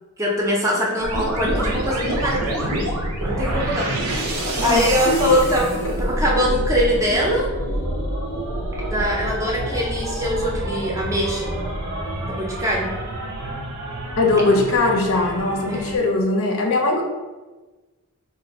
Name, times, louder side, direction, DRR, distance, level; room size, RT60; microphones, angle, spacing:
voice 1, 0.2-2.9 3.2-4.0 4.6-5.7 6.0-7.5 8.7-11.5 12.3-12.9 15.7-16.0, equal, 15° right, -3 dB, 0.5 m, -22 dB
sound 1, 1.0-16.0, right 1 dB, 85° right, 0.7 m, -27 dB
voice 2, 4.6-5.1 5.8-5.9 14.2-17.0, left 2 dB, 65° left, 1 dB, 0.6 m, -20 dB
2.5 x 2.5 x 4.1 m, 1.2 s
head